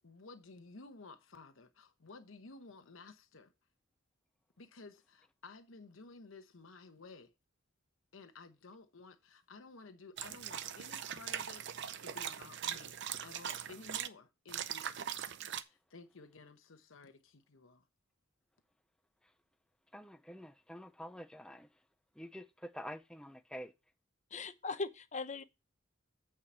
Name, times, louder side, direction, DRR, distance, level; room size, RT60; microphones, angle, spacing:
voice 1, 0.0-3.5 4.6-7.3 8.1-17.9, left 3 dB, 75° left, 0.9 m, -54 dB
sound 1, 10.2-14.1 14.5-15.6, right 9 dB, 60° right, 0.6 m, -41 dB
voice 2, 19.9-21.7 22.2-23.7, equal, 5° left, 0.5 m, -47 dB
voice 3, 24.3-25.4, left 3 dB, 35° left, 0.7 m, -39 dB
8.5 x 4.8 x 5.5 m
head